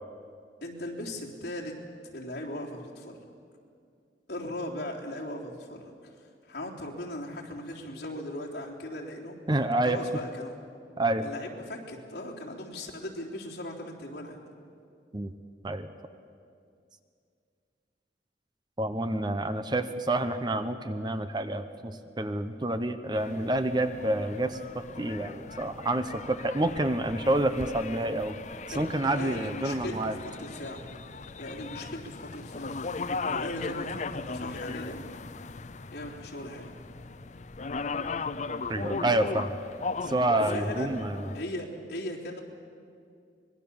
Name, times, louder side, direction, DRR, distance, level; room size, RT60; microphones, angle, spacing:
voice 1, 0.6-1.8 2.1-3.2 4.3-5.9 6.5-9.5 9.9-10.6 11.2-14.4 28.7-30.8 31.4-32.7 33.0-35.0 35.9-36.7 40.5-41.1 41.3-42.4, left 1 dB, 60° left, -3 dB, 3.6 m, -38 dB
voice 2, 9.5-10.0 11.0-11.3 15.1-15.3 15.6-15.9 18.8-28.3 28.8-30.2 38.7-39.6 40.1-41.3, right 1 dB, 25° right, 9 dB, 0.9 m, -28 dB
sound 1, 23.1-41.4, left 4 dB, 40° left, 0.6 m, -38 dB
25.0 x 21.0 x 7.1 m, 2.4 s
head